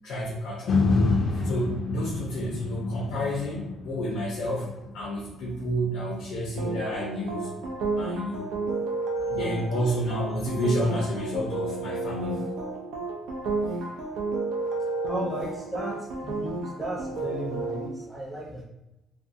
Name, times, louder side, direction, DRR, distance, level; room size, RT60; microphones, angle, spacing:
voice 1, 0.0-0.7 1.0-7.5 8.0-8.5 9.3-12.6 13.7-13.8, equal, 85° left, -3 dB, 0.7 m, -30 dB
sound 1, 0.7-8.8 9.3-9.4, left 3 dB, 50° left, 0.4 m, -30 dB
sound 2, 6.6-17.9, right 3 dB, 80° right, 0.5 m, -32 dB
voice 2, 15.1-18.6, right 1 dB, 5° right, -5 dB, 0.6 m, -35 dB
2.5 x 2.2 x 2.6 m, 0.94 s
cardioid pair, 125°, 0 cm